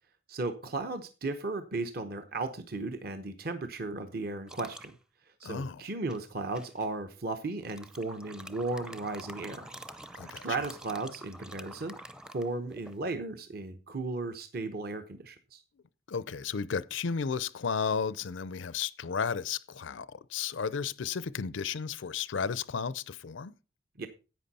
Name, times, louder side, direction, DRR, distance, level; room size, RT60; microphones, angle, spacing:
voice 1, 0.3-4.9 5.4-9.7 10.4-11.9 12.3-15.6 24.0-24.1, right 3 dB, 50° right, 0.9 m, -35 dB
sound 1, 4.5-4.9 6.1-6.9 7.6-13.0, right 1 dB, 5° right, 0.5 m, -47 dB
voice 2, 5.4-5.8 10.1-10.5 16.1-23.5, left 6 dB, 85° left, 0.6 m, -33 dB
11.0 x 8.2 x 4.2 m
head